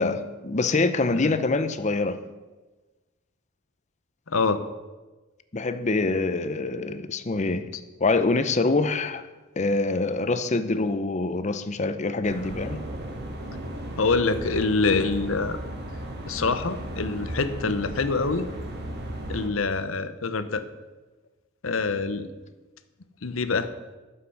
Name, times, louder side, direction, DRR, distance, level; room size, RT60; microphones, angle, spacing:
voice 1, 0.0-2.2 5.5-7.6 8.0-9.3 9.6-12.8, left 3 dB, 35° left, 0.6 m, -25 dB
voice 2, 4.3-4.6 14.0-15.6 16.3-18.5 19.3-20.6 21.6-22.3 23.2-23.7, left 4 dB, 75° left, 0.8 m, -25 dB
sound 1, 12.2-19.5, right 1 dB, 55° right, 1.6 m, -35 dB
11.5 x 7.6 x 5.8 m
head